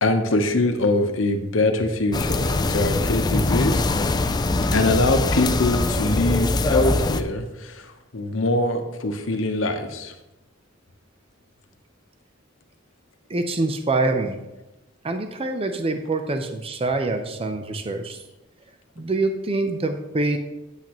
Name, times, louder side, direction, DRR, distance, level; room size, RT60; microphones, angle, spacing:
voice 1, 0.0-3.9 4.7-10.1, left 2 dB, 80° left, 5 dB, 1.0 m, -23 dB
sound 1, 2.1-7.2, left 2 dB, 20° left, 0.4 m, -22 dB
voice 2, 13.3-14.4 15.0-18.2 19.0-20.4, right 2 dB, 30° right, 6 dB, 0.6 m, -25 dB
8.7 x 8.3 x 3.0 m, 0.99 s
head